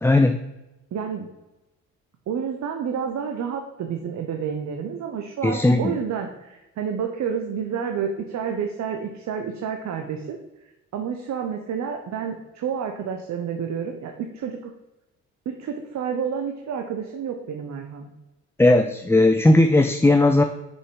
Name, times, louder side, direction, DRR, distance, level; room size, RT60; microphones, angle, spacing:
voice 1, 0.0-0.4 5.4-6.0 18.6-20.4, left 2 dB, 10° left, 6 dB, 0.4 m, -17 dB
voice 2, 0.9-1.3 2.3-10.4 10.9-14.7 15.5-18.1, right 7 dB, 65° right, 4 dB, 0.9 m, -29 dB
6.7 x 5.6 x 4.7 m, 1.0 s
cardioid pair, 90°, 30 cm